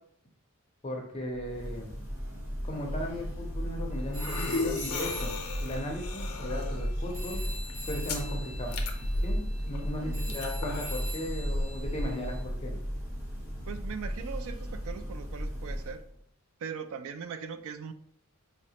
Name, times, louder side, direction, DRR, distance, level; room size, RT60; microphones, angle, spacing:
voice 1, 0.8-1.9 2.6-7.4 7.8-8.7 9.2-12.8, equal, 25° left, 0 dB, 0.6 m, -37 dB
Church bell, 1.2-16.2, equal, 10° right, 1.3 m, -37 dB
sound 1, 3.1-12.6, left 1 dB, 80° left, 0.5 m, -35 dB
Telephone, 4.1-6.9 7.1-12.4, equal, 40° right, 1.5 m, -44 dB
voice 2, 10.0-10.3 13.7-16.0 16.6-17.9, right 6 dB, 65° right, 9 dB, 0.4 m, -40 dB
4.9 x 2.1 x 2.8 m, 0.66 s
head